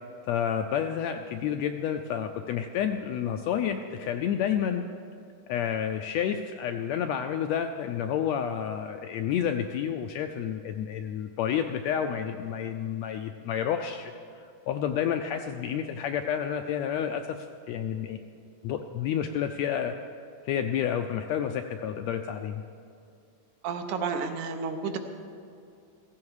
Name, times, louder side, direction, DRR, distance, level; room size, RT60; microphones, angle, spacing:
voice 1, 0.3-4.8 5.5-18.2 18.6-20.0 20.4-22.6, left 8 dB, 80° left, 6 dB, 1.6 m, -30 dB
voice 2, 23.6-25.0, right 5 dB, 80° right, 6 dB, 2.5 m, -31 dB
16.0 x 15.5 x 4.8 m, 2.4 s
omnidirectional pair, 3.6 m